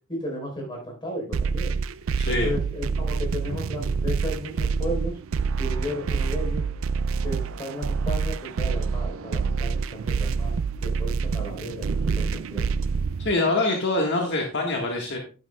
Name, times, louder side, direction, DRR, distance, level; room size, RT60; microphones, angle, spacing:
voice 1, 0.1-1.8 2.3-5.2 5.6-6.7 7.2-10.5 10.8-12.7, equal, 25° left, 0 dB, 4.1 m, -34 dB
sound 1, 1.3-13.3, right 5 dB, 75° right, 0.4 m, -27 dB
voice 2, 2.2-2.5 13.2-15.2, left 2 dB, 60° left, 1 dB, 1.6 m, -24 dB
10.5 x 9.8 x 2.3 m, 0.35 s
head